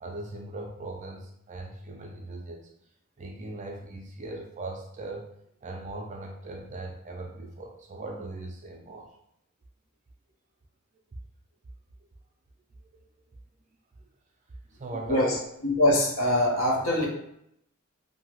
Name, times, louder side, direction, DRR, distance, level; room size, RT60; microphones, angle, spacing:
voice 1, 0.0-2.7 3.2-5.3 5.6-9.1 14.7-15.4, right 2 dB, 35° right, 1 dB, 0.3 m, -39 dB
voice 2, 15.6-17.1, left 1 dB, 65° left, -2 dB, 0.8 m, -23 dB
2.8 x 2.6 x 2.8 m, 0.77 s
head